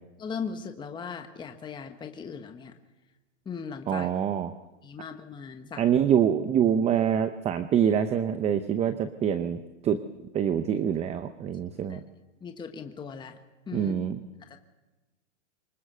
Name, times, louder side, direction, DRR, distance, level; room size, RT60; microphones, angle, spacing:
voice 1, 0.2-2.8 3.4-4.1 4.8-5.9 11.9-12.0 12.4-13.4 13.7-13.9 14.5-14.6, left 6 dB, 10° left, 6 dB, 1.3 m, -38 dB
voice 2, 3.9-4.5 5.8-10.0 10.3-12.0 13.7-14.2, right 8 dB, 15° right, 12 dB, 0.7 m, -25 dB
24.5 x 20.5 x 6.8 m, 1.1 s
hypercardioid pair, 140°, 37 cm